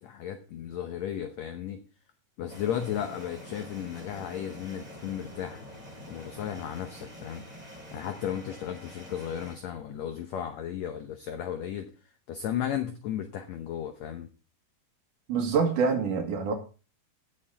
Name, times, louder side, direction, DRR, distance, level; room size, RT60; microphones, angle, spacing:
voice 1, 0.0-1.8 2.4-5.6 6.1-7.4 7.9-11.9 12.3-14.3, left 10 dB, 80° left, 8 dB, 1.5 m, -34 dB
sound 1, 2.5-9.6, left 1 dB, 5° right, 5.5 m, -46 dB
voice 2, 15.3-16.5, right 5 dB, 65° right, 4 dB, 3.1 m, -26 dB
16.5 x 6.6 x 3.9 m, 0.34 s
omnidirectional pair, 4.2 m